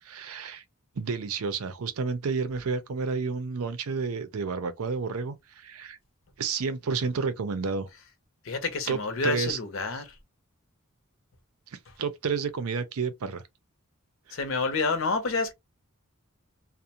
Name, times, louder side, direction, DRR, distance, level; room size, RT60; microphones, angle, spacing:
voice 1, 0.0-0.6 1.0-6.0 6.4-7.9 8.9-9.6 12.0-13.4 14.3-14.4, right 5 dB, 85° right, 0.5 m, -30 dB
voice 2, 8.4-10.1 14.3-15.5, left 3 dB, 60° left, 0.6 m, -28 dB
2.5 x 2.1 x 2.8 m
head